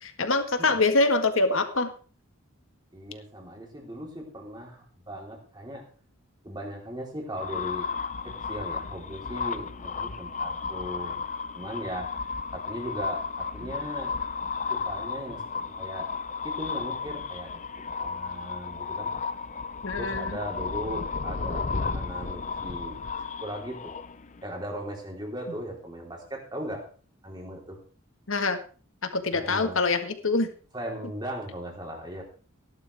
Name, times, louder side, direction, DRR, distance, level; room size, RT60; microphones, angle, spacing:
voice 1, 0.0-1.9 19.8-20.4 28.3-28.6 29.0-30.5, left 3 dB, 70° left, 8 dB, 1.6 m, -25 dB
voice 2, 2.9-5.9 6.4-7.9 8.2-11.3 11.5-12.2 12.5-14.2 14.7-16.1 16.4-17.6 18.0-19.2 20.0-23.0 23.4-24.0 24.4-26.9 27.2-27.8 29.3-29.8 30.7-32.2, equal, 20° right, 0 dB, 3.8 m, -38 dB
sound 1, 7.4-24.4, left 5 dB, 35° left, 0.6 m, -33 dB
17.5 x 11.5 x 3.5 m, 0.39 s
head